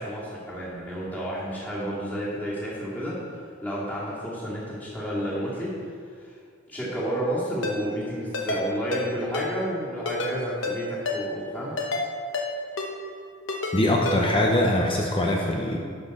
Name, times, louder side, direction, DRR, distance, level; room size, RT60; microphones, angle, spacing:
voice 1, 0.0-3.2 3.6-5.9 6.2-6.3 6.7-11.8, equal, 10° left, -8 dB, 2.4 m, -31 dB
Ringtone, 7.6-7.8 8.3-8.6 8.9-9.0 9.3-9.5 10.1-10.3 10.6-10.8 11.1-11.2 11.8-12.0 12.3-12.5 12.8-12.9 13.5-13.7 14.1-14.2, left 3 dB, 70° left, 1.1 m, -28 dB
voice 2, 13.7-15.8, left 1 dB, 25° left, 0 dB, 0.7 m, -22 dB
11.5 x 5.8 x 4.2 m, 2.2 s
head